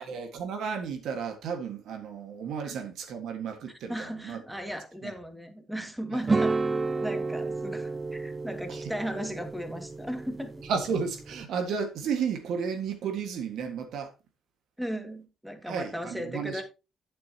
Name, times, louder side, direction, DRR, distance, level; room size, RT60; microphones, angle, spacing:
voice 1, 0.0-4.4 5.0-5.1 6.1-6.2 8.7-8.8 10.6-14.1 15.7-16.6, right 6 dB, 80° right, 1.7 m, -33 dB
voice 2, 3.9-6.6 7.0-10.5 14.8-16.6, equal, 5° right, 2.1 m, -36 dB
sound 1, 6.3-11.4, right 3 dB, 25° right, 0.4 m, -31 dB
10.5 x 8.7 x 2.9 m
cardioid pair, 90°, 0 cm